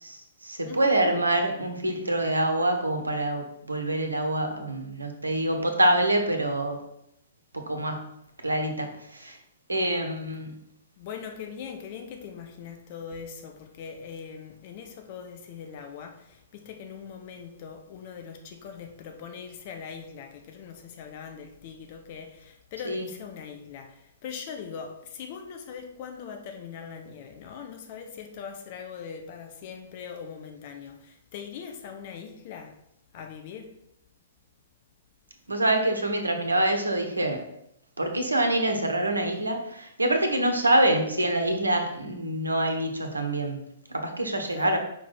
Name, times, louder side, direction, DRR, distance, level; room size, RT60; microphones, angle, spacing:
voice 1, 0.0-6.8 7.5-8.0 8.4-9.4 9.7-10.5 22.8-23.1 35.5-37.4 38.0-43.6 43.9-44.8, right 1 dB, 80° right, 5 dB, 1.2 m, -26 dB
voice 2, 0.7-1.2 11.0-32.7 33.1-33.7 44.5-44.8, left 7 dB, 40° left, 5 dB, 1.0 m, -41 dB
5.1 x 5.0 x 5.6 m, 0.78 s
figure-of-eight pair, 115°, 0 cm